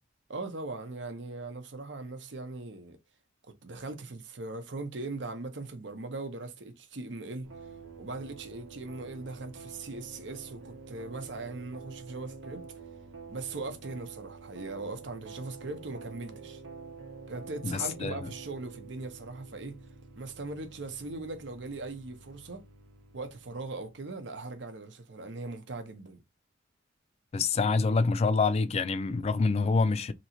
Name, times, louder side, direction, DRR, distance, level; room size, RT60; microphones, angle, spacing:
voice 1, 0.3-3.0 3.6-7.5 8.0-12.6 13.3-16.6 17.3-19.8 20.2-22.6 23.1-26.2, right 3 dB, 65° right, 0.8 m, -39 dB
sound 1, 7.4-24.2, right 4 dB, 90° right, 1.0 m, -48 dB
voice 2, 17.6-18.1 27.3-30.1, left 4 dB, 35° left, 0.3 m, -26 dB
3.0 x 2.8 x 2.7 m
head